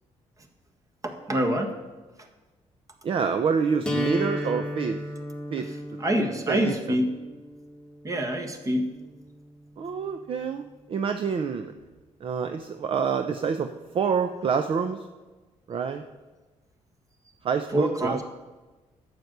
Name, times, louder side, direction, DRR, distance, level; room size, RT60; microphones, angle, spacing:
voice 1, 1.0-1.7 6.0-7.1 8.0-8.9 17.7-18.2, equal, 25° right, 5 dB, 1.6 m, -26 dB
voice 2, 3.0-5.0 5.5-5.7 6.5-7.0 9.8-11.7 12.2-13.7 13.9-15.0 15.7-16.0 17.4-18.2, right 6 dB, 45° right, 8 dB, 0.6 m, -27 dB
sound 1, 3.9-9.8, left 1 dB, 5° left, 1.5 m, -34 dB
11.5 x 8.0 x 6.7 m, 1.2 s
cardioid pair, 125°, 12 cm